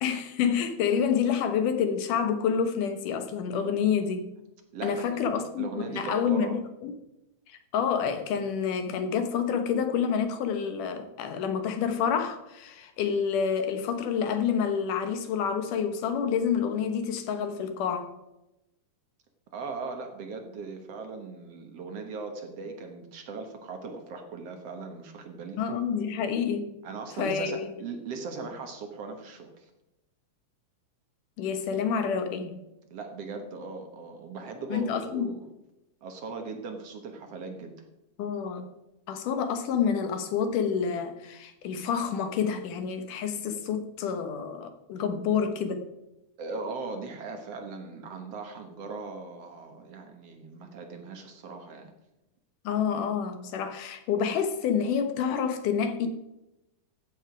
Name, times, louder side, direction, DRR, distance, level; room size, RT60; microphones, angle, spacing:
voice 1, 0.0-4.3 4.8-6.9 7.5-18.1 25.6-26.7 27.2-27.7 31.4-32.6 34.7-35.3 38.2-38.7 39.1-45.9 52.6-56.1, left 7 dB, 85° left, 2.7 m, -28 dB
voice 2, 4.7-5.2 5.6-6.6 19.5-25.6 26.8-29.7 32.9-35.5 36.0-37.9 46.4-51.9, right 4 dB, 60° right, 2.1 m, -39 dB
14.0 x 7.9 x 5.1 m
omnidirectional pair, 3.6 m